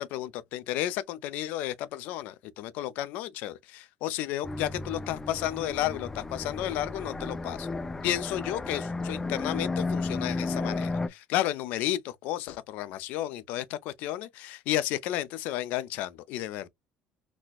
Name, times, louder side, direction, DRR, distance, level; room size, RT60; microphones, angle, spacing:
voice 1, 0.0-7.7 8.0-16.7, left 13 dB, 75° left, 0.5 m, -32 dB
sound 1, 4.4-11.1, left 3 dB, 15° left, 0.4 m, -33 dB
4.1 x 2.2 x 2.3 m
supercardioid pair, 105°, 3 cm